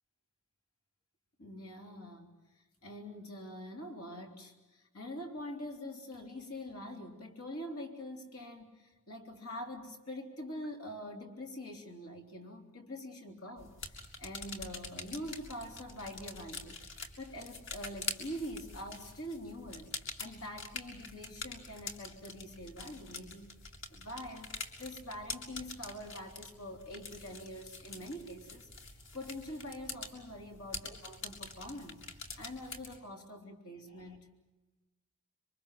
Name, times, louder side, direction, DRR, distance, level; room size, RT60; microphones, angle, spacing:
voice 1, 1.4-16.8 17.2-19.9 20.2-23.6 23.9-28.7 29.1-34.3, left 1 dB, 80° left, 3 dB, 3.5 m, -45 dB
sound 1, 13.6-33.0, left 3 dB, 55° left, 2.8 m, -46 dB
27.0 x 24.0 x 7.6 m, 1.1 s
head